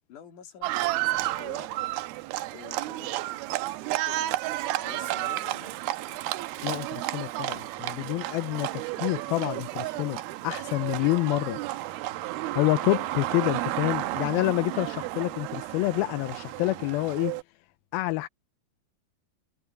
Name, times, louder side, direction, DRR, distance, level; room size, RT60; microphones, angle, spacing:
voice 1, 0.1-0.8 1.1-1.7 2.5-3.4 3.9-4.4 4.8-6.2, left 9 dB, 60° left, 3.5 m, -48 dB
Livestock farm animals working animals, 0.6-17.4, right 17 dB, 90° right, 2.7 m, -32 dB
voice 2, 6.6-11.6 12.5-17.4 17.9-18.3, left 20 dB, 85° left, 2.5 m, -28 dB
omnidirectional pair, 4.3 m